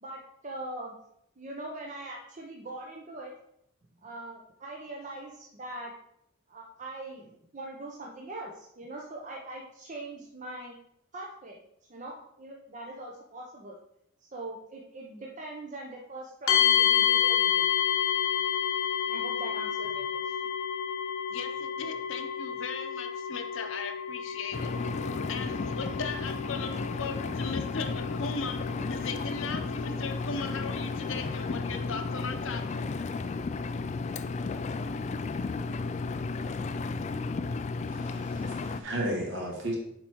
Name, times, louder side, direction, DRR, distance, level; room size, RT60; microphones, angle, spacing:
voice 1, 0.0-0.9 1.4-3.3 4.0-5.9 6.5-10.7 11.1-11.6 11.9-13.8 14.3-17.7 19.1-20.4, right 2 dB, 35° right, -1 dB, 0.8 m, -42 dB
sound 1, 16.5-32.2, left 9 dB, 90° left, 1.1 m, -30 dB
voice 2, 21.3-24.9 25.3-28.6 28.9-32.8, left 5 dB, 65° left, 6 dB, 0.8 m, -38 dB
Engine, 24.5-38.8, left 3 dB, 35° left, 0.3 m, -33 dB
voice 3, 37.9-39.8, right 1 dB, 60° right, -1 dB, 2.2 m, -34 dB
7.4 x 4.7 x 4.5 m, 0.75 s
head